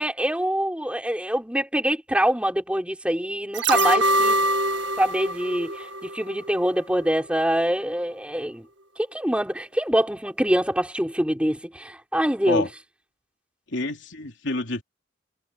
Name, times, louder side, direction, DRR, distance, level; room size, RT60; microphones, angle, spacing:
voice 1, 0.0-4.5 5.0-5.7 6.0-8.7 9.1-12.7, equal, 5° right, 5.8 m, -24 dB
sound 1, 3.5-6.7 7.0-7.1, right 1 dB, 80° right, 1.6 m, -24 dB
voice 2, 13.7-14.8, left 2 dB, 75° left, 3.2 m, -28 dB
head